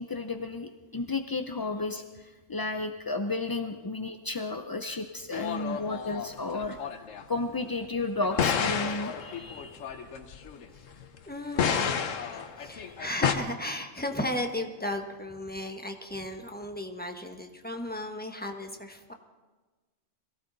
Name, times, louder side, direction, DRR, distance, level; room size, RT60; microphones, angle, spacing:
voice 1, 0.0-9.8, left 3 dB, 35° left, 6 dB, 0.3 m, -33 dB
sound 1, 5.3-7.2 8.2-11.2 11.5-13.3, left 7 dB, 85° left, 1.3 m, -30 dB
voice 2, 9.5-9.8 11.3-12.0 12.3-19.1, left 1 dB, 10° left, 3 dB, 1.1 m, -35 dB
22.5 x 15.5 x 4.0 m, 1.3 s
omnidirectional pair, 1.3 m